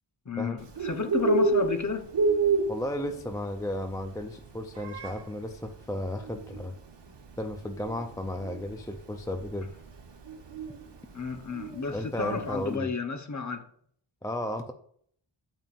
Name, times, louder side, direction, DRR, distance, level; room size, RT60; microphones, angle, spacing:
voice 1, 0.3-2.1 11.1-13.6, left 5 dB, 35° left, 5 dB, 0.9 m, -32 dB
Bird, 0.6-12.7, right 3 dB, 55° right, 1.1 m, -31 dB
voice 2, 2.7-6.8 7.4-9.7 11.9-12.9 14.2-14.7, left 1 dB, 5° left, 6 dB, 0.4 m, -34 dB
9.0 x 7.2 x 2.5 m, 0.63 s
wide cardioid pair, 105°, 50 cm